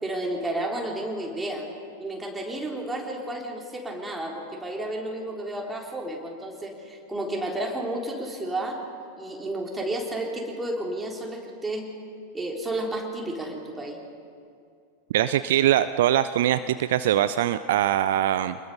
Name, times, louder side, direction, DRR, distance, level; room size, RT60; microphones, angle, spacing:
voice 1, 0.0-1.7 2.0-8.8 9.2-11.9 12.3-14.0, right 1 dB, 10° right, 0 dB, 3.5 m, -31 dB
voice 2, 15.1-18.6, right 12 dB, 55° right, 13 dB, 0.5 m, -22 dB
27.0 x 21.0 x 5.5 m, 2.4 s
figure-of-eight pair, 90°, 0 cm